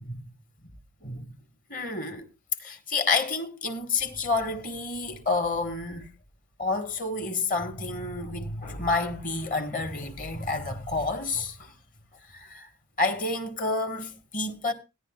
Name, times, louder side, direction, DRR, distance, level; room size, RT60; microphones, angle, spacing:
voice 1, 1.0-1.3 1.7-2.3 2.6-6.1 6.6-11.7 12.3-12.7 13.0-14.7, left 3 dB, 40° left, 1.5 m, -29 dB
16.5 x 10.5 x 2.4 m
head